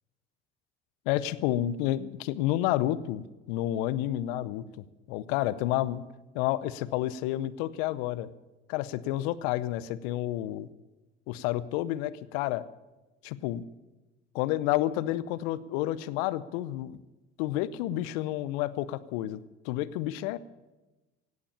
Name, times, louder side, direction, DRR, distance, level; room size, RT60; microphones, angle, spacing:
voice 1, 1.1-4.6 5.1-6.0 6.3-8.3 8.7-10.7 11.3-12.7 13.2-13.6 14.3-17.0 17.4-20.4, left 14 dB, 70° left, 16 dB, 0.8 m, -30 dB
17.0 x 8.6 x 8.6 m, 1.1 s
hypercardioid pair, 55°, 32 cm